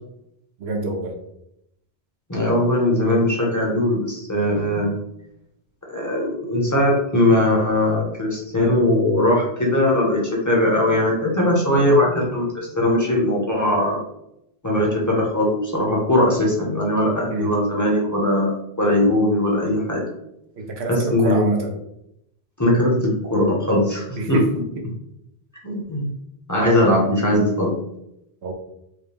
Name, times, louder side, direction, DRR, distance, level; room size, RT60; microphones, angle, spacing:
voice 1, 0.6-1.2 17.3-17.5 20.6-21.8 24.2-24.5 28.4-28.5, right 2 dB, 85° right, 1 dB, 1.1 m, -26 dB
voice 2, 2.3-4.9 5.9-14.0 14.6-20.0 20.9-21.4 22.6-24.4 25.6-26.1 26.5-27.8, left 1 dB, 20° left, -3 dB, 0.9 m, -20 dB
4.7 x 2.2 x 3.4 m, 0.80 s
omnidirectional pair, 1.1 m